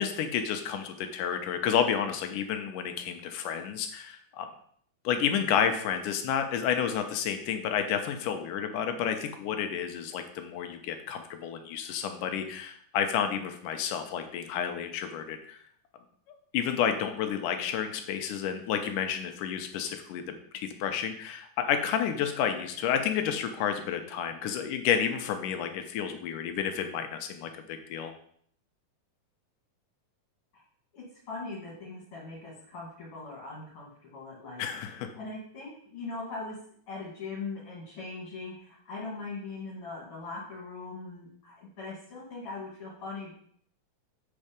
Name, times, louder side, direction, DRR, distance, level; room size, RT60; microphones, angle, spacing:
voice 1, 0.0-4.5 5.0-15.6 16.5-28.1 34.6-35.1, left 8 dB, 80° left, 6 dB, 2.1 m, -30 dB
voice 2, 30.9-34.7 35.2-36.6 36.9-43.3, left 3 dB, 45° left, -5 dB, 2.5 m, -40 dB
8.1 x 4.3 x 5.1 m, 0.63 s
omnidirectional pair, 4.0 m